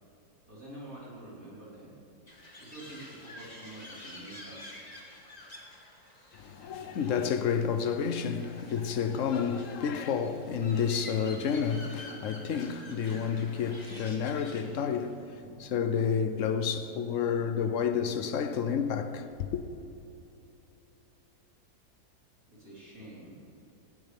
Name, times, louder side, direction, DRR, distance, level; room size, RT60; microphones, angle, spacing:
voice 1, 0.5-1.9 2.6-4.9 22.5-23.4, right 1 dB, 45° right, 5.0 m, -47 dB
sound 1, 2.3-14.6, left 1 dB, 20° left, 2.0 m, -49 dB
voice 2, 6.4-19.6, left 7 dB, 60° left, 0.8 m, -30 dB
19.5 x 16.0 x 3.5 m
omnidirectional pair, 2.1 m